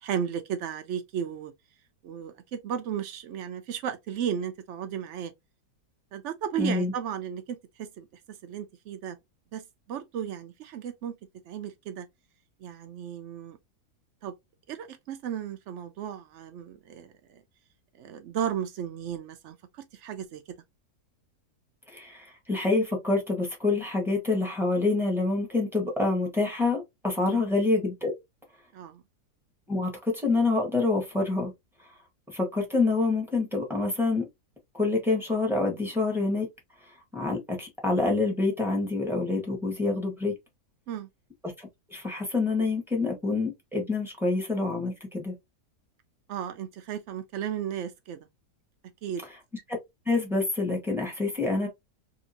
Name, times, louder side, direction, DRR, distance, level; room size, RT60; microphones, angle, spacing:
voice 1, 0.0-1.5 2.0-5.3 6.1-9.2 9.5-11.1 11.5-12.1 12.6-13.6 14.2-14.3 14.7-17.4 18.0-20.4 27.3-27.4 28.7-29.0 40.9-41.1 46.3-48.3 49.0-49.2, right 9 dB, 80° right, 0.6 m, -34 dB
voice 2, 6.6-6.9 21.9-28.1 29.7-31.5 32.3-34.2 34.7-36.5 37.1-40.3 41.6-45.3 49.7-49.8 50.1-51.7, left 3 dB, ahead, 0.8 m, -27 dB
2.8 x 2.7 x 2.7 m
omnidirectional pair, 1.8 m